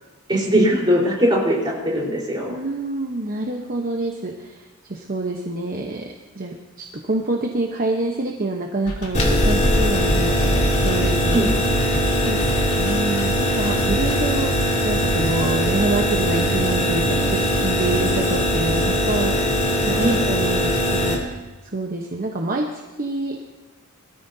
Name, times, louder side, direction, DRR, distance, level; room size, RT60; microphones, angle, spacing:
voice 1, 0.3-2.6 11.3-11.5 20.0-20.2, equal, 20° right, -3 dB, 4.2 m, -20 dB
voice 2, 2.5-4.6 4.9-6.1 6.3-10.4 10.7-11.6 12.2-12.4 12.7-14.5 14.8-21.4 21.7-22.7 23.0-23.4, right 2 dB, 40° right, 1 dB, 1.0 m, -26 dB
sound 1, 8.9-14.2, equal, 75° left, 3.2 m, -28 dB
sound 2, 9.1-21.2, equal, 30° left, 2.8 m, -21 dB
22.0 x 13.5 x 2.8 m, 1.2 s
head